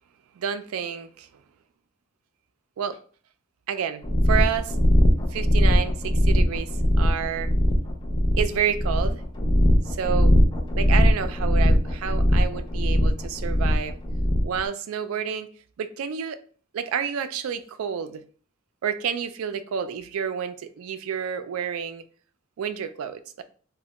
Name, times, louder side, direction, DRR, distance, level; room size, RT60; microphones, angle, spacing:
voice 1, 0.4-1.3 2.8-3.0 3.7-4.8 5.3-7.5 8.4-9.2 9.9-10.4 10.8-14.0 14.4-15.5 15.8-16.4 16.7-18.2 18.8-22.0 22.6-23.4, right 8 dB, 80° right, 0.3 m, -29 dB
sound 1, 4.0-14.6, equal, 20° left, 0.4 m, -20 dB
3.2 x 2.1 x 2.8 m
head